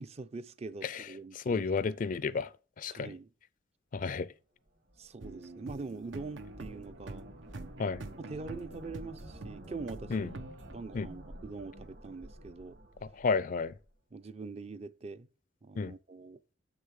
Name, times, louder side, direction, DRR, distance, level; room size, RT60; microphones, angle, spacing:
voice 1, 0.0-1.7 2.9-3.3 5.0-7.3 8.2-10.3 10.7-12.8 14.1-15.3 15.6-16.4, right 3 dB, 35° right, 0.5 m, -43 dB
voice 2, 1.4-2.5 2.8-3.1 3.9-4.3 7.8-8.0 10.1-10.3 10.9-11.1 13.2-13.7 15.8-15.9, left 4 dB, 45° left, 0.4 m, -31 dB
sound 1, 4.7-13.9, equal, 65° right, 2.6 m, -51 dB
sound 2, 5.2-10.8, right 2 dB, 85° right, 0.9 m, -46 dB
7.2 x 6.6 x 6.4 m
head